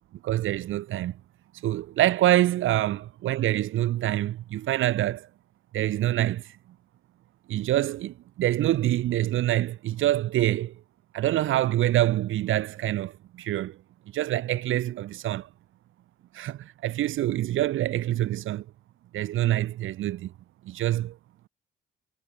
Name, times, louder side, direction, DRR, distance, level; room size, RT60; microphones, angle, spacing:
voice 1, 0.2-1.2 1.5-5.3 5.7-6.6 7.5-10.8 11.1-13.8 14.1-15.5 16.3-18.6 19.1-20.3 20.6-21.2, right 14 dB, 85° right, 4.8 m, -26 dB
cardioid pair, 90°, 20 cm